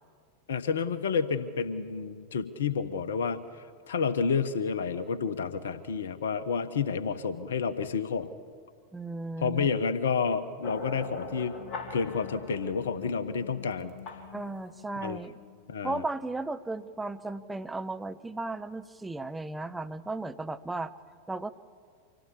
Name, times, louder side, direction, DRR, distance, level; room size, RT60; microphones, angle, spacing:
voice 1, 0.5-3.4 3.9-8.4 9.4-11.6 11.9-13.9 15.0-15.2 15.7-16.0, left 5 dB, 65° left, 14 dB, 1.1 m, -30 dB
voice 2, 8.9-9.7 14.3-15.3 15.8-20.9 21.3-21.5, right 2 dB, 10° right, 9 dB, 0.8 m, -35 dB
sound 1, 10.6-15.9, left 4 dB, 40° left, 2.6 m, -43 dB
25.5 x 16.5 x 7.3 m, 2.2 s
figure-of-eight pair, 90°, 0 cm